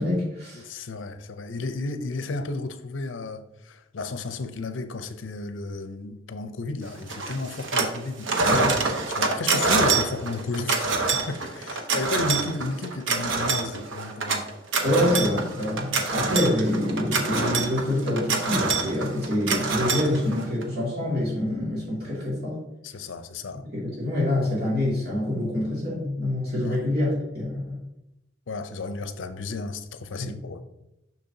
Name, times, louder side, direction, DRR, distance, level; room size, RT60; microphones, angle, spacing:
voice 1, 0.0-0.6 8.5-8.8 14.8-22.6 23.7-27.8 30.2-30.3, left 1 dB, 55° right, 2.4 m, -26 dB
voice 2, 0.5-8.3 9.1-14.5 15.0-15.3 15.8-16.1 22.8-23.6 26.6-26.8 28.5-30.6, left 3 dB, 80° left, 0.6 m, -33 dB
sound 1, 7.1-8.0 8.2-20.6, right 3 dB, 85° right, 0.9 m, -26 dB
6.7 x 6.2 x 2.7 m
head